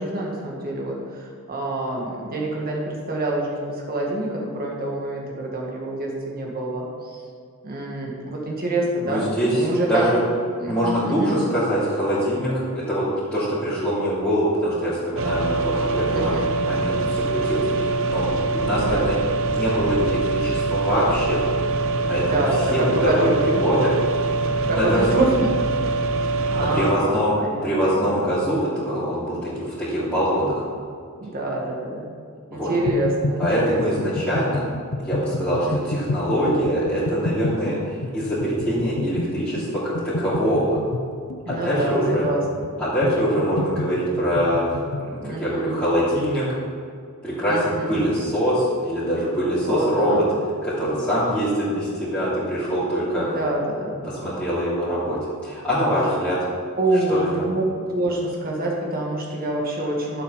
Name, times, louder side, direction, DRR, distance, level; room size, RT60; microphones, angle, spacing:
voice 1, 0.0-7.2 7.6-10.1 10.5-11.4 16.1-16.5 18.8-19.1 22.1-23.6 24.7-25.4 26.5-28.3 31.2-32.1 32.5-33.8 35.6-36.1 41.4-42.7 45.2-45.7 47.5-48.1 49.6-50.2 53.1-54.0 56.8-57.6 57.9-60.2, right 2 dB, 40° right, -2 dB, 2.0 m, -27 dB
voice 2, 9.0-10.2 10.6-13.0 13.3-16.3 16.7-18.2 18.5-19.2 19.4-21.4 22.1-22.4 22.7-23.9 24.7-25.2 26.5-27.3 27.6-30.6 32.5-32.7 33.4-34.7 35.0-40.8 41.5-42.2 42.8-44.6 45.0-46.4 47.2-50.2 50.6-53.2 54.0-56.4 57.1-57.3, equal, 5° left, -14 dB, 3.1 m, -23 dB
sound 1, 15.2-26.9, right 3 dB, 60° right, 0.7 m, -24 dB
sound 2, 32.9-45.1, left 2 dB, 90° left, 0.7 m, -30 dB
11.5 x 6.9 x 5.7 m, 2.3 s
head